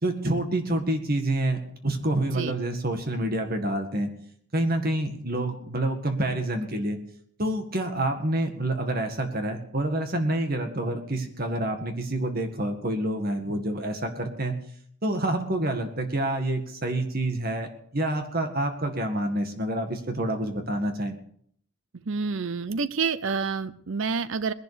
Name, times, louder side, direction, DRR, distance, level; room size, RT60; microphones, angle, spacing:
voice 1, 0.0-4.1 4.5-7.0 7.4-14.6 15.0-21.1, right 1 dB, 45° right, 6 dB, 1.9 m, -27 dB
voice 2, 22.1-24.5, right 5 dB, 60° right, 15 dB, 0.6 m, -28 dB
20.0 x 11.0 x 5.1 m, 0.65 s
head